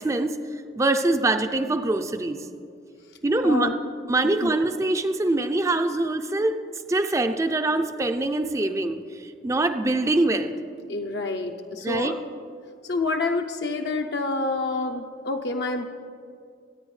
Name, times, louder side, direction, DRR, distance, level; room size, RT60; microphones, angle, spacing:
voice 1, 0.0-2.5 3.2-3.7 4.1-6.6 6.9-10.5 11.8-12.2, right 2 dB, 15° right, 8 dB, 0.4 m, -24 dB
voice 2, 10.9-12.2 12.8-15.8, left 3 dB, 65° left, 3 dB, 0.6 m, -27 dB
23.0 x 9.7 x 3.2 m, 2.4 s
head